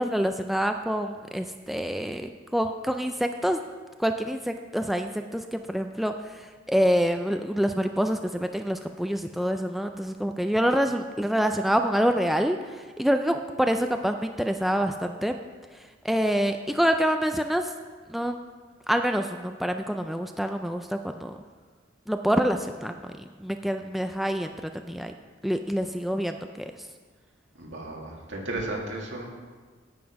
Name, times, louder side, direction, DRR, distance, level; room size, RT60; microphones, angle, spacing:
voice 1, 0.0-3.6 4.0-15.4 15.7-17.7 18.1-18.4 18.9-21.4 22.1-25.1 25.4-26.7, equal, ahead, 5 dB, 0.3 m, -26 dB
voice 2, 27.6-29.2, right 2 dB, 75° right, -1 dB, 2.2 m, -34 dB
9.3 x 8.9 x 5.2 m, 1.5 s
head